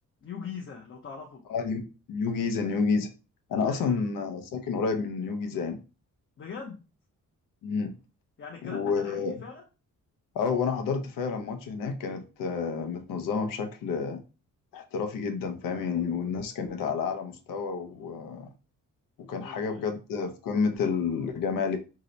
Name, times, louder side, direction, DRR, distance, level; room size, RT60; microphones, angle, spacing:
voice 1, 0.2-1.4 3.6-4.0 6.4-6.8 8.4-9.6 19.4-19.9, left 5 dB, 40° left, 0.6 m, -41 dB
voice 2, 1.5-3.1 3.5-5.8 7.6-7.9 8.6-9.3 10.3-14.2 14.7-18.5 19.2-21.8, left 5 dB, 80° left, 0.6 m, -30 dB
2.8 x 2.0 x 3.8 m
cardioid pair, 125°, 33 cm